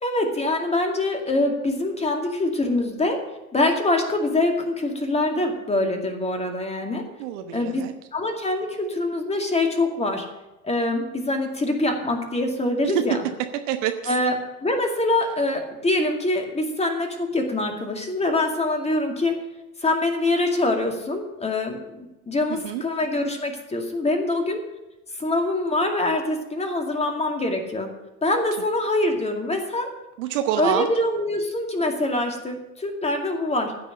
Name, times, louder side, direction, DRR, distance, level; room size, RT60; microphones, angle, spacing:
voice 1, 0.0-3.2 3.5-7.0 7.5-7.8 8.1-10.3 10.6-13.2 14.1-19.4 19.8-24.6 25.1-27.9 28.2-29.9 30.6-33.8, left 2 dB, 15° left, 3 dB, 2.3 m, -24 dB
voice 2, 7.2-7.9 12.9-13.0 13.7-14.1 22.6-22.8 30.2-30.9, right 11 dB, 55° right, 7 dB, 1.1 m, -26 dB
15.0 x 6.1 x 8.5 m, 0.98 s
figure-of-eight pair, 75°, 46 cm